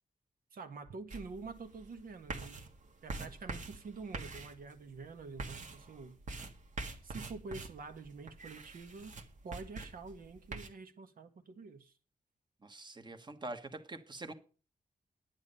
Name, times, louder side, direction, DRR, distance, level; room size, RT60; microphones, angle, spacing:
voice 1, 0.5-2.6 3.0-6.2 7.0-9.2 9.4-11.9, right 4 dB, 75° right, 1.7 m, -47 dB
sound 1, 1.1-10.7, right 3 dB, 60° right, 1.6 m, -45 dB
voice 2, 12.6-14.3, right 2 dB, 30° right, 1.4 m, -45 dB
11.0 x 9.8 x 5.4 m
wide cardioid pair, 155°, 15 cm